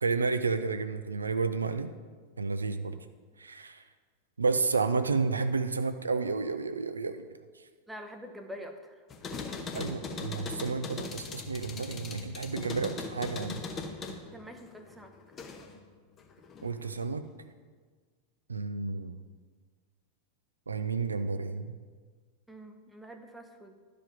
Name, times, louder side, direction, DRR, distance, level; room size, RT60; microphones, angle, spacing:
voice 1, 0.0-1.9 2.4-3.0 3.4-3.8 4.4-7.2 9.8-13.6 16.6-17.2 18.5-19.2 20.7-21.7, right 4 dB, 75° right, 9 dB, 0.4 m, -31 dB
voice 2, 7.9-8.9 14.2-15.1 22.5-23.8, equal, 5° right, 5 dB, 0.8 m, -45 dB
sound 1, 9.1-15.8 16.2-17.0, left 3 dB, 25° left, 0.9 m, -40 dB
11.5 x 5.0 x 5.1 m, 1.5 s
figure-of-eight pair, 90°, 0 cm